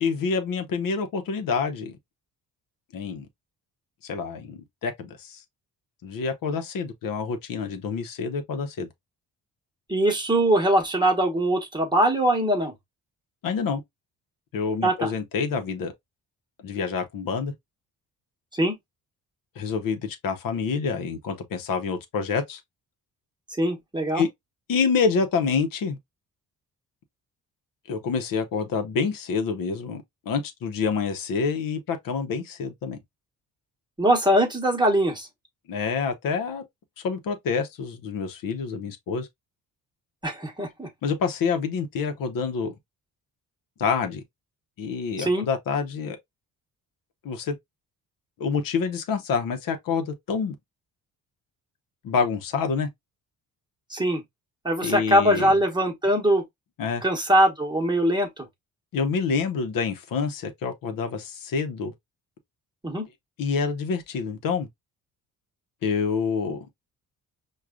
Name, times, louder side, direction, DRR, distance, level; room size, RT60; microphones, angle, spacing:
voice 1, 0.0-1.9 2.9-3.3 4.0-5.4 6.0-8.9 13.4-13.8 14.5-15.9 16.6-17.5 19.6-22.6 24.1-24.3 24.7-26.0 27.9-33.0 35.7-36.6 37.0-39.3 41.0-42.7 43.8-44.2 44.8-46.2 47.2-47.5 48.4-50.5 52.0-52.9 54.8-55.6 56.8-57.0 58.9-61.9 63.4-64.7 65.8-66.6, left 5 dB, 65° left, 0.8 m, -27 dB
voice 2, 9.9-12.7 14.8-15.1 18.5-18.7 23.6-24.2 34.0-35.3 40.2-40.9 45.2-45.4 53.9-54.2 54.6-56.4 57.0-58.4 62.8-63.0, right 1 dB, 10° right, 1.1 m, -22 dB
4.7 x 2.3 x 2.3 m
cardioid pair, 90°, 36 cm